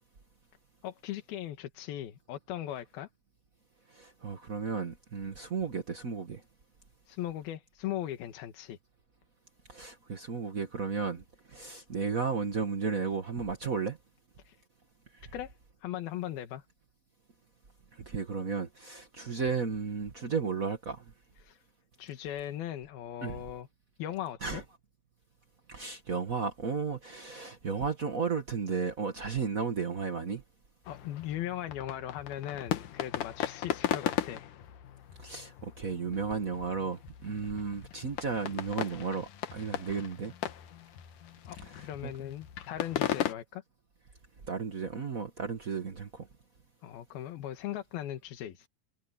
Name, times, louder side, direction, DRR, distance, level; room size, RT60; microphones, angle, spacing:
voice 1, 0.8-3.1 7.1-8.8 14.4-14.6 15.3-16.6 21.4-21.6 22.0-23.7 24.0-24.6 30.9-34.5 41.5-43.6 46.8-48.7, left 12 dB, 90° left, 3.4 m, -39 dB
voice 2, 3.9-6.4 9.7-14.0 17.9-21.0 23.2-23.4 24.4-24.6 25.7-30.4 35.2-40.3 42.0-42.1 44.5-46.3, right 5 dB, 90° right, 0.7 m, -34 dB
sound 1, 30.9-43.3, left 12 dB, 70° left, 2.6 m, -37 dB
omnidirectional pair, 4.2 m